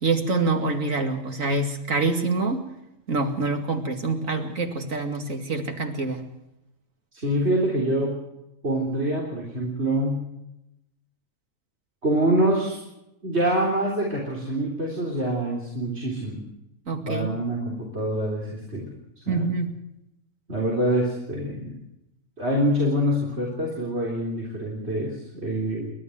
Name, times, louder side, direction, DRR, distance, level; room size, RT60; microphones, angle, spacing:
voice 1, 0.0-2.6 3.1-6.2 16.9-17.4 19.3-19.7, right 3 dB, 85° right, 5 dB, 2.8 m, -26 dB
voice 2, 7.1-8.1 8.6-10.2 12.0-12.8 13.2-16.4 17.1-18.9 19.3-19.5 20.5-21.7 22.4-25.9, right 1 dB, 55° right, -2 dB, 4.0 m, -25 dB
30.0 x 12.5 x 7.9 m, 0.87 s
omnidirectional pair, 1.3 m